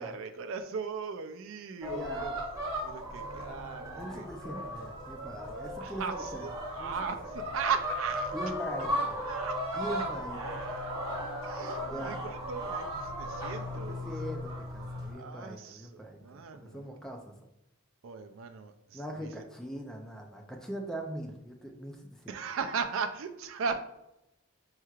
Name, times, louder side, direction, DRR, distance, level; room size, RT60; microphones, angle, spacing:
voice 1, 0.0-2.3 2.8-4.3 5.8-8.4 9.2-9.6 10.3-10.9 11.4-14.1 15.1-16.9 18.0-19.3 22.3-23.8, right 6 dB, 75° right, 7 dB, 0.4 m, -37 dB
sound 1, 1.8-15.1, equal, 20° right, 1.4 m, -36 dB
voice 2, 1.9-2.3 3.9-6.4 6.8-6.9 8.3-9.3 9.7-10.6 11.9-12.2 13.7-17.4 18.9-22.3, right 1 dB, 5° left, 2 dB, 0.4 m, -41 dB
5.6 x 3.1 x 2.4 m, 0.87 s
head